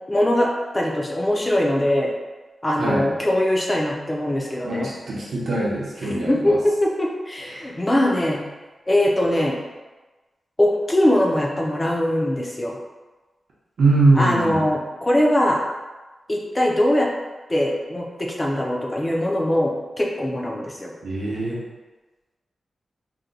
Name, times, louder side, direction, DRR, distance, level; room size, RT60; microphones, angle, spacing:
voice 1, 0.1-2.1 2.6-4.9 6.0-8.4 8.9-9.6 10.6-12.8 14.2-15.6 16.3-17.1 17.5-20.9, left 1 dB, 15° left, -1 dB, 0.4 m, -21 dB
voice 2, 4.6-6.6 7.4-7.8 13.8-14.6 21.0-21.6, right 2 dB, 65° right, -6 dB, 0.7 m, -22 dB
2.7 x 2.2 x 3.8 m, 1.2 s
wide cardioid pair, 170°, 0 cm